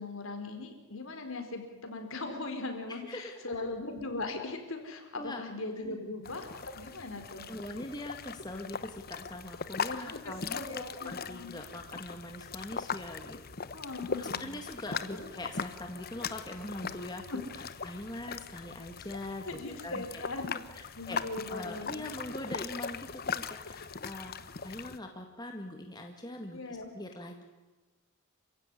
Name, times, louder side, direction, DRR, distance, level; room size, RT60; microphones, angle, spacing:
voice 1, 0.0-7.5 9.9-10.2 10.5-11.5 13.7-14.5 15.1-15.3 17.3-17.4 19.4-20.6 20.9-22.1 26.5-26.9, left 2 dB, 65° left, 5 dB, 4.4 m, -39 dB
voice 2, 2.9-3.5 5.2-5.4 5.8-6.1 7.5-13.4 14.2-20.2 20.7-21.2 21.5-27.5, left 1 dB, 20° left, 3 dB, 1.9 m, -42 dB
sound 1, 6.2-25.0, left 5 dB, 45° left, 1.0 m, -40 dB
27.5 x 16.0 x 9.9 m, 1.2 s
head